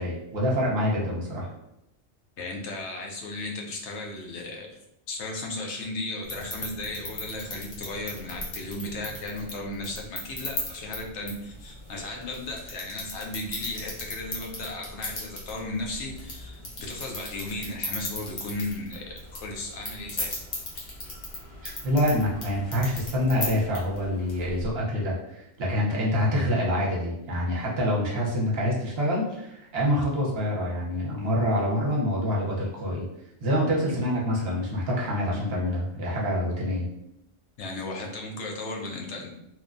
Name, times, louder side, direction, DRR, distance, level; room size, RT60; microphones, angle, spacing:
voice 1, 0.0-1.5 21.8-33.0 33.4-36.9, equal, 65° right, -4 dB, 1.0 m, -26 dB
voice 2, 2.4-4.7 5.1-20.4 20.7-20.9 37.6-39.3, left 2 dB, 85° left, 1 dB, 0.9 m, -35 dB
sound 1, 6.2-24.7, left 2 dB, 45° left, 0.8 m, -38 dB
2.9 x 2.2 x 2.5 m, 0.84 s
omnidirectional pair, 1.2 m